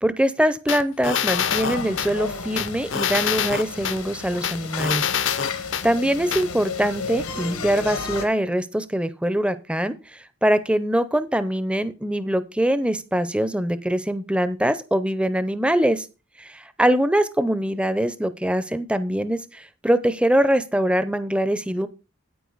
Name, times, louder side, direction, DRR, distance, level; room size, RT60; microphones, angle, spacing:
voice 1, 0.0-5.1 5.8-16.1 16.4-21.9, right 1 dB, 5° right, 14 dB, 0.5 m, -23 dB
sound 1, 0.7-2.1 2.6-4.0 4.4-5.9 6.3-6.4, left 8 dB, 55° left, 0.6 m, -25 dB
sound 2, 1.3-8.3, left 4 dB, 85° left, 1.6 m, -33 dB
9.3 x 9.0 x 4.0 m, 0.31 s
head